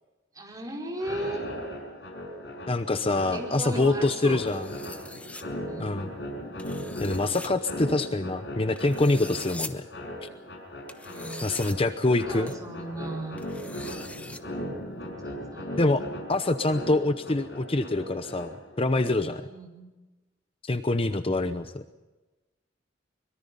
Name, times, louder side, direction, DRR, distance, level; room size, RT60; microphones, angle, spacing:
voice 1, 0.3-1.4 2.9-4.4 5.7-6.1 11.0-11.5 12.3-13.4 15.2-15.8 19.4-19.9, right 1 dB, 20° right, -1 dB, 4.8 m, -36 dB
sound 1, 0.9-18.8, equal, 80° left, 5.5 m, -38 dB
voice 2, 2.7-4.7 5.8-6.1 7.0-9.9 10.2-10.3 11.4-12.5 15.8-19.5 20.6-21.8, left 2 dB, 30° left, 10 dB, 0.8 m, -25 dB
sound 2, 4.5-5.4 6.6-7.5 8.8-9.7 10.9-11.7 12.5-12.6 13.4-14.4, left 2 dB, 10° left, 1.1 m, -42 dB
24.0 x 22.5 x 5.5 m, 1.1 s
head